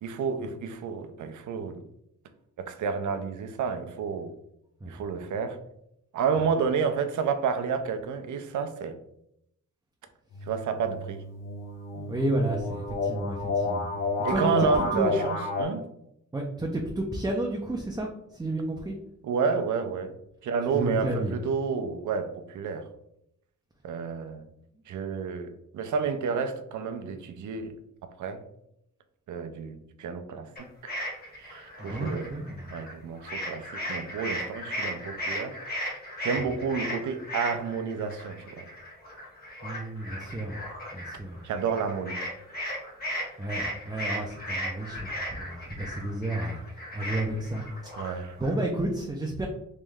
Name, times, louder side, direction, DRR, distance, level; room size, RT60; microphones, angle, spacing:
voice 1, 0.0-1.8 2.6-4.3 4.9-5.6 6.1-9.0 10.5-11.2 14.2-15.9 19.2-20.1 20.4-22.9 23.8-24.4 24.9-27.7 28.2-28.4 29.3-30.5 30.8-30.9 31.3-32.3 32.7-35.9 36.2-38.7 41.4-42.2 48.0-48.3, right 5 dB, 70° right, 0.6 m, -30 dB
sound 1, 10.3-15.6, left 3 dB, 85° left, 1.2 m, -31 dB
voice 2, 11.9-13.9 14.3-15.1 16.3-18.1 18.3-19.0 20.7-21.3 31.8-32.7 39.6-40.6 40.9-41.4 43.4-46.6 46.9-47.9 48.4-49.5, right 1 dB, 10° right, 0.5 m, -31 dB
sound 2, 30.6-32.9 33.2-48.6, equal, 30° left, 1.2 m, -36 dB
3.2 x 3.0 x 3.5 m
cardioid pair, 115°, 31 cm